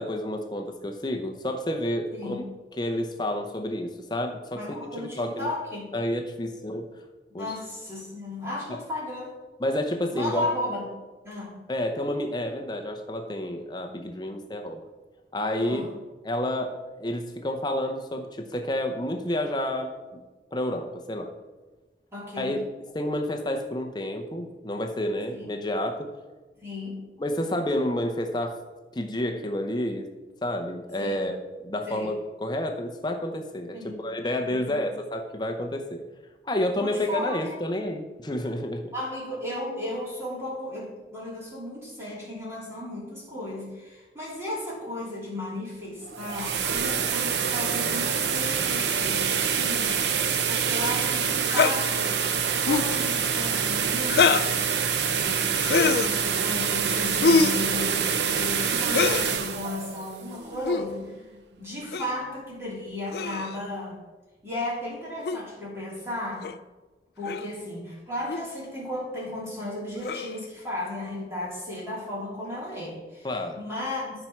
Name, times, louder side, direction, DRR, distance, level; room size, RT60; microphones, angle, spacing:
voice 1, 0.0-2.4 2.8-5.5 5.9-6.8 7.3-7.5 8.7-8.8 9.6-10.5 11.7-14.8 15.3-15.9 16.2-20.2 20.5-21.3 22.4-22.6 22.9-26.1 27.2-28.6 28.9-30.1 30.4-31.4 31.6-36.0 36.4-38.9 73.2-73.6, left 1 dB, 25° left, 4 dB, 0.7 m, -30 dB
voice 2, 4.5-5.9 7.3-9.3 10.1-10.9 11.2-11.5 15.6-15.9 22.1-22.6 25.3-25.6 26.6-27.0 31.0-31.3 31.9-32.1 33.7-34.0 34.5-34.9 36.7-37.6 38.9-52.2 52.6-54.7 55.2-58.1 58.3-61.2 61.6-64.0 64.4-66.5 67.2-73.3 73.5-74.1, left 1 dB, 15° right, -6 dB, 3.3 m, -35 dB
sound 1, 46.0-60.9, right 7 dB, 75° right, 0.8 m, -26 dB
sound 2, 51.5-51.7 52.6-52.9 54.1-54.5 55.6-56.1 57.2-57.6 58.9-59.3 60.6-60.8 61.9-62.1 63.1-63.6 65.2-65.4 66.4-66.6 67.2-67.5 68.3-68.5 70.0-70.4, left 5 dB, 60° left, 0.4 m, -23 dB
13.5 x 4.5 x 5.9 m, 1.3 s
head